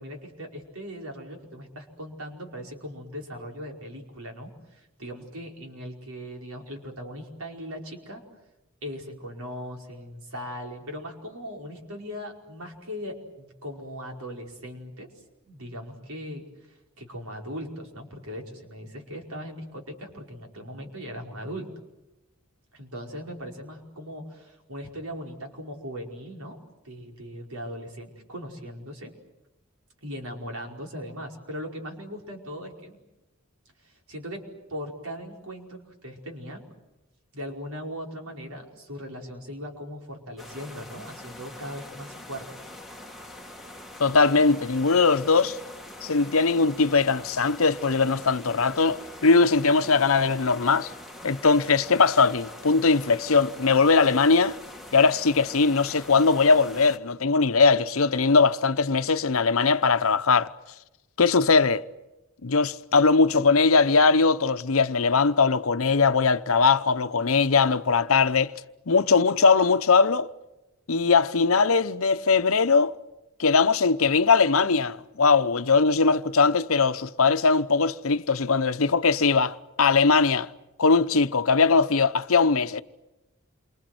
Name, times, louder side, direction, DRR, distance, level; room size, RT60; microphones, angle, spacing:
voice 1, 0.0-8.2 8.8-15.1 15.4-21.7 22.7-26.6 26.8-29.1 30.0-33.0 33.8-36.6 37.3-42.7, equal, 85° right, 5.1 m, -39 dB
sound 1, 40.4-57.0, left 1 dB, ahead, 2.0 m, -44 dB
voice 2, 44.0-45.6 46.0-50.9 51.2-54.6 54.9-60.5 61.2-61.8 62.4-68.5 68.9-70.3 70.9-73.0 73.4-80.5 80.8-82.8, left 4 dB, 70° left, 0.9 m, -20 dB
28.5 x 26.0 x 7.9 m
head